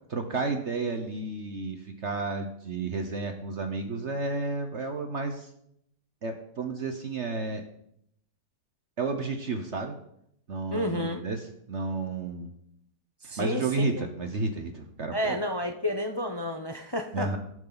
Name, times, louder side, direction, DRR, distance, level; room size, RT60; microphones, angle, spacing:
voice 1, 0.1-5.5 6.2-7.6 9.0-9.9 10.5-11.4 11.7-12.5 13.4-15.4 17.1-17.4, right 3 dB, 50° right, 5 dB, 1.1 m, -31 dB
voice 2, 10.7-11.3 13.2-14.0 15.1-17.4, left 1 dB, 40° left, 5 dB, 0.3 m, -31 dB
18.0 x 7.7 x 4.0 m, 0.73 s
omnidirectional pair, 1.9 m